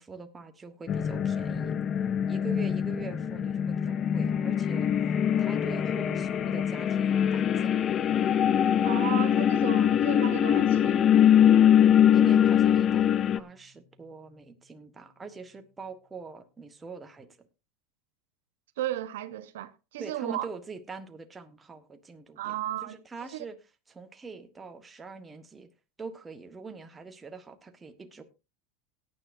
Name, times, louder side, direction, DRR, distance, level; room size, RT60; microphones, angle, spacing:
voice 1, 0.0-1.8 2.2-4.9 5.4-7.8 12.1-17.3 20.0-22.5 22.8-23.6 23.9-25.7 26.0-28.2, right 4 dB, 15° right, 1.4 m, -43 dB
sound 1, 0.9-13.4, left 9 dB, 30° left, 0.5 m, -23 dB
voice 2, 8.8-11.1 18.8-20.5 22.4-23.0 23.3-23.5, right 13 dB, 80° right, 1.1 m, -34 dB
sound 2, 16.1-16.2, left 2 dB, 40° right, 2.9 m, -54 dB
17.5 x 9.3 x 2.7 m
supercardioid pair, 135°, 0 cm